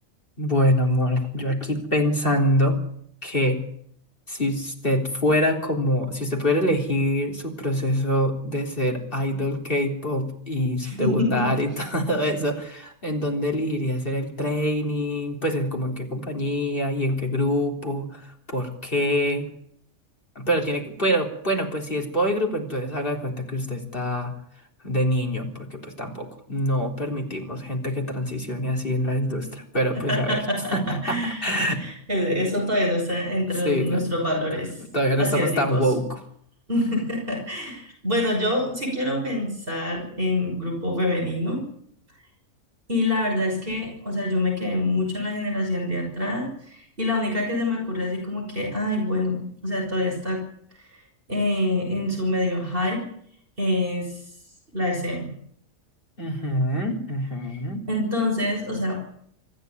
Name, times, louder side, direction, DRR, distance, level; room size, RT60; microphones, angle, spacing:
voice 1, 0.4-2.8 3.2-3.6 4.3-19.5 20.4-24.3 24.8-30.4 30.7-31.8 33.6-34.0 34.3-34.4 34.8-36.2 56.2-57.8, equal, 45° left, 2 dB, 4.0 m, -25 dB
voice 2, 10.8-11.5 29.9-31.4 31.8-34.8 35.2-35.8 36.7-41.6 42.9-50.4 51.3-53.0 53.6-54.2 54.7-55.3 57.5-57.6 57.9-59.0, left 1 dB, 45° right, 0 dB, 6.3 m, -26 dB
25.5 x 14.0 x 9.8 m, 0.67 s
omnidirectional pair, 1.3 m